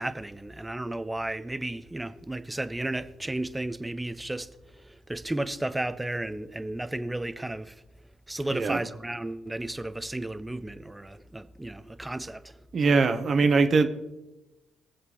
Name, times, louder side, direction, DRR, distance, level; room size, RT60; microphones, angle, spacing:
voice 1, 0.0-7.8 8.3-12.6, right 1 dB, 15° right, 1.0 m, -33 dB
voice 2, 8.5-8.8 12.7-13.9, right 4 dB, 50° right, 1.4 m, -22 dB
21.0 x 7.7 x 4.1 m
hypercardioid pair, 50°, 0 cm